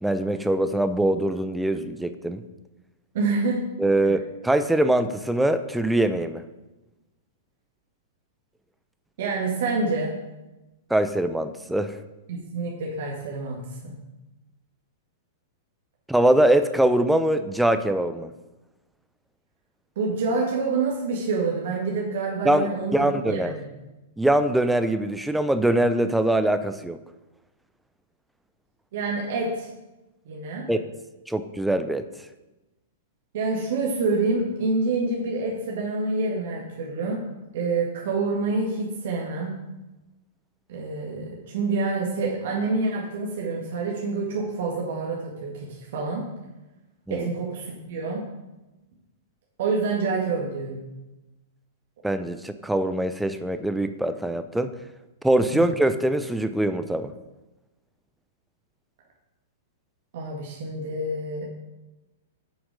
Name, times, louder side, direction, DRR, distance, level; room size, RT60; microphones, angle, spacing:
voice 1, 0.0-2.4 3.8-6.4 10.9-12.0 16.1-18.3 22.4-23.6 24.2-27.0 30.7-30.8 31.3-32.0 47.1-47.3 52.0-54.7 55.2-57.1, right 1 dB, 5° right, 9 dB, 0.6 m, -23 dB
voice 2, 3.1-3.6 4.0-4.2 9.2-10.1 12.3-14.0 20.0-23.7 28.9-29.7 30.3-30.7 33.3-37.2 37.5-39.5 40.7-46.3 47.1-48.2 49.6-50.8 55.5-55.6 60.1-61.5, right 3 dB, 55° right, -2 dB, 1.7 m, -27 dB
9.5 x 6.0 x 4.9 m, 1.0 s
figure-of-eight pair, 105°, 0 cm